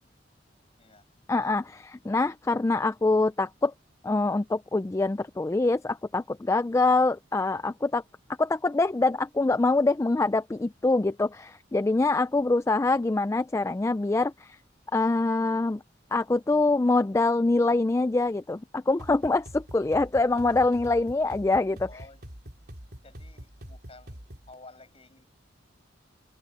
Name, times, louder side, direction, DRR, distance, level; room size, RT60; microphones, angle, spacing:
voice 1, 0.8-1.1 21.9-22.2 23.0-25.3, left 3 dB, 30° left, 7.4 m, -52 dB
voice 2, 1.3-3.7 4.0-8.0 8.4-14.6 14.9-15.8 16.1-21.9, left 3 dB, 15° left, 0.3 m, -24 dB
sound 1, 19.0-24.5, equal, 55° right, 3.9 m, -45 dB
head